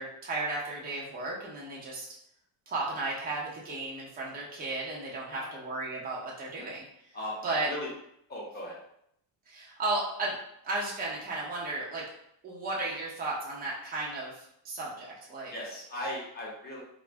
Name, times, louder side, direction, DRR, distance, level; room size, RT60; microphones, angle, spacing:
voice 1, 0.0-2.1 2.7-6.8 7.4-7.7 9.5-10.3 10.6-12.0 12.4-15.5, right 2 dB, 20° right, -5 dB, 0.7 m, -34 dB
voice 2, 7.1-7.9 8.3-8.8 15.5-16.8, left 1 dB, 20° left, -5 dB, 0.9 m, -38 dB
2.3 x 2.1 x 3.4 m, 0.73 s
cardioid pair, 125°, 42 cm